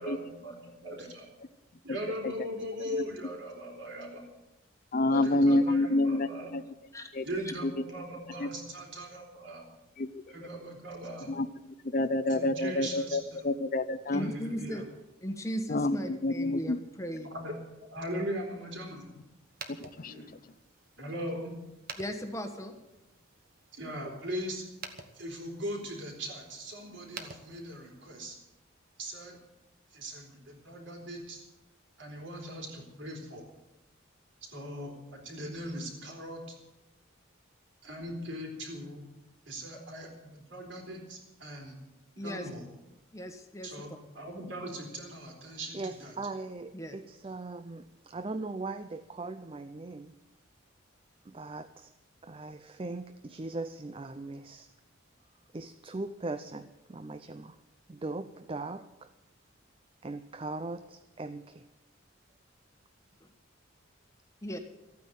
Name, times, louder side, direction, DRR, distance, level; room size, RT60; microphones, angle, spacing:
voice 1, 0.0-1.3 1.8-4.2 5.1-6.5 7.2-9.6 10.3-11.4 12.3-13.5 14.1-14.8 17.3-19.1 20.0-20.3 21.0-21.6 23.7-24.6 25.1-28.4 29.0-29.4 29.9-31.4 32.0-33.4 34.5-36.4 37.8-39.0 39.5-41.8 42.2-42.7 43.6-46.1, equal, 60° right, 2 dB, 4.0 m, -40 dB
voice 2, 4.9-6.6 7.1-7.2 7.6-7.7 8.4-8.5 10.0-10.2 11.3-11.5 11.8-14.3 15.7-16.8 19.8-20.1, left 2 dB, 40° left, 13 dB, 0.5 m, -28 dB
voice 3, 14.1-14.8 15.2-17.3 22.0-22.7 42.2-42.5 43.1-43.7 46.7-47.0 63.2-63.3 64.4-64.6, equal, 15° left, 5 dB, 1.2 m, -37 dB
sound 1, 19.4-28.2, right 5 dB, 45° right, 1.3 m, -50 dB
voice 4, 45.7-50.1 51.2-51.9 52.2-54.7 55.5-57.6 57.9-59.1 60.0-61.7, right 3 dB, 25° right, 11 dB, 0.4 m, -39 dB
14.5 x 9.4 x 9.2 m, 0.97 s
head